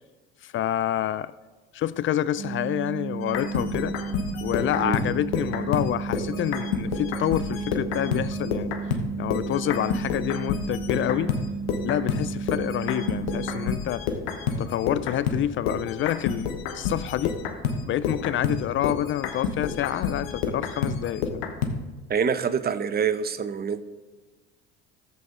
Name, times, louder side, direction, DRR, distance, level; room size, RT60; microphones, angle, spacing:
voice 1, 0.4-1.3 1.7-4.0 4.4-8.7 9.2-11.4 11.8-14.0 14.6-17.4 17.8-21.4, left 12 dB, 45° left, 17 dB, 0.4 m, -28 dB
sound 1, 2.4-13.8, right 5 dB, 55° right, 1.2 m, -33 dB
sound 2, 3.2-9.1 9.3-21.8, left 6 dB, 85° left, 1.2 m, -29 dB
voice 2, 22.1-23.8, right 6 dB, 35° right, 12 dB, 0.8 m, -26 dB
14.0 x 7.7 x 3.8 m, 1.3 s
hypercardioid pair, 75°, 29 cm